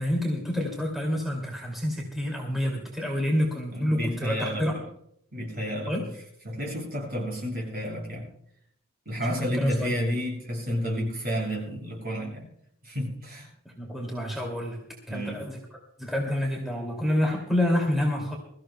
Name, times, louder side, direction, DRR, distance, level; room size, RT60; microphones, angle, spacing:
voice 1, 0.0-4.7 5.9-6.0 9.4-9.9 13.7-14.8 15.1-15.6 16.0-18.4, left 1 dB, ahead, -1 dB, 2.4 m, -28 dB
voice 2, 3.7-4.8 5.3-6.0 6.4-8.3 9.1-12.5 12.8-13.5 15.1-15.4, equal, 45° right, -1 dB, 7.2 m, -31 dB
23.0 x 14.5 x 2.2 m, 0.70 s
head